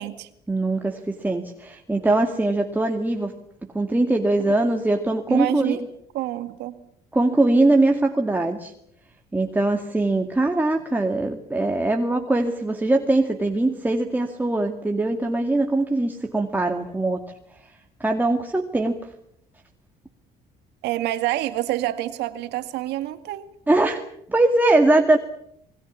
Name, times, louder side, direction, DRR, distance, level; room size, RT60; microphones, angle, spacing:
voice 1, 0.5-3.3 3.7-5.9 7.1-8.7 9.3-17.2 17.6-17.7 18.0-19.0 23.7-24.0 24.3-25.2, right 2 dB, 10° right, 3 dB, 2.1 m, -21 dB
voice 2, 5.3-5.8 6.1-6.8 20.8-23.5, right 14 dB, 85° right, 9 dB, 2.3 m, -27 dB
27.5 x 21.5 x 7.3 m, 0.73 s
cardioid pair, 110°, 17 cm